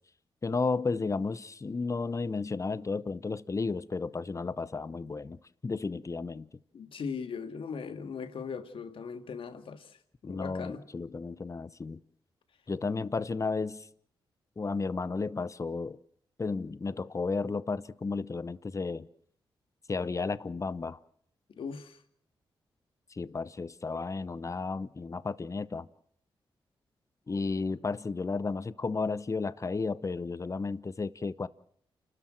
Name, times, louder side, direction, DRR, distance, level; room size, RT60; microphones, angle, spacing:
voice 1, 0.4-6.5 10.2-12.0 12.7-13.9 14.6-16.0 16.4-19.1 19.9-21.0 23.1-25.9 27.3-31.5, left 4 dB, 35° left, 1.0 m, -33 dB
voice 2, 6.7-10.0 10.2-10.8 21.6-22.0, left 6 dB, 70° left, 2.0 m, -39 dB
29.0 x 13.0 x 7.7 m
cardioid pair, 60°, 9 cm